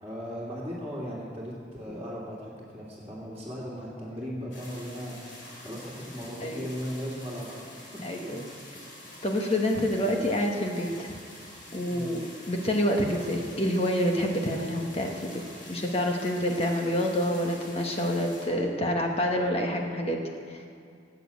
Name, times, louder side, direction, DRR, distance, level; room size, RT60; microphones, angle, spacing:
voice 1, 0.0-7.5 8.2-8.5 11.9-12.1, equal, 10° right, -9 dB, 2.7 m, -37 dB
sound 1, 4.5-18.4, left 1 dB, 90° left, 5.0 m, -47 dB
voice 2, 8.0-8.4 9.2-11.1 11.7-15.4 15.7-20.6, equal, 35° left, 1 dB, 1.3 m, -28 dB
18.0 x 8.4 x 8.3 m, 2.3 s
head